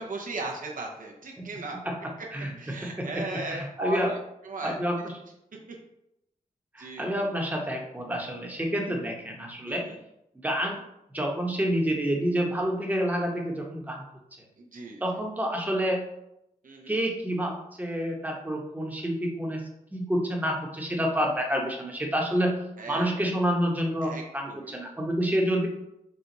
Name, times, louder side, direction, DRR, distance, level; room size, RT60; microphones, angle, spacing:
voice 1, 0.0-1.8 2.6-4.0 4.4-4.8 5.7-5.8 6.8-7.0 9.7-10.0 14.6-15.0 16.6-16.9 22.8-23.2 24.0-24.2 24.5-24.7, right 2 dB, 70° right, 1 dB, 0.8 m, -37 dB
voice 2, 1.4-2.0 2.3-4.1 4.6-5.2 6.7-9.8 10.3-10.8 11.1-14.0 15.0-16.0 16.9-19.6 19.9-22.6 22.9-25.7, equal, 10° right, 0 dB, 0.9 m, -28 dB
4.3 x 2.3 x 3.9 m, 0.84 s
cardioid pair, 60°, 15 cm